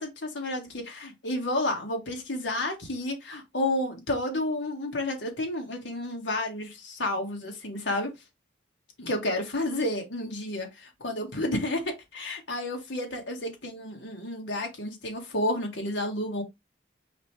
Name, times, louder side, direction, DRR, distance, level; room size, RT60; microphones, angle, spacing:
voice 1, 0.0-8.1 9.0-16.4, left 1 dB, 70° left, 1.5 m, -31 dB
4.8 x 3.4 x 3.1 m
head